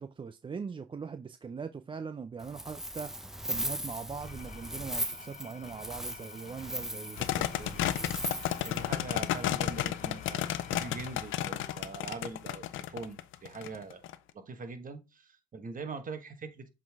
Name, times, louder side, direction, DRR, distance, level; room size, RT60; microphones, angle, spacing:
voice 1, 0.0-3.1 3.4-7.9, right 5 dB, 25° right, 0.4 m, -41 dB
Wind, 2.4-8.9, equal, ahead, 0.8 m, -38 dB
Engine / Tools, 4.0-12.3, left 6 dB, 40° left, 0.9 m, -51 dB
sound 1, 7.2-14.1, left 12 dB, 80° left, 0.6 m, -32 dB
voice 2, 8.6-14.0 14.3-16.7, right 4 dB, 45° right, 1.4 m, -42 dB
7.5 x 3.9 x 3.5 m
cardioid pair, 90°, 20 cm